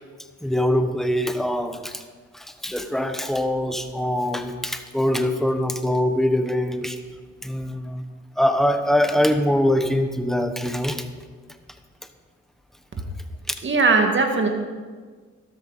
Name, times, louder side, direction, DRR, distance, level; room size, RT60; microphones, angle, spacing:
voice 1, 0.4-1.9 2.6-7.0 7.4-8.0 8.4-11.0, left 1 dB, ahead, 7 dB, 1.0 m, -23 dB
voice 2, 13.6-14.5, right 4 dB, 40° right, 3 dB, 2.0 m, -19 dB
13.0 x 12.5 x 4.1 m, 1.5 s
cardioid pair, 90°, 29 cm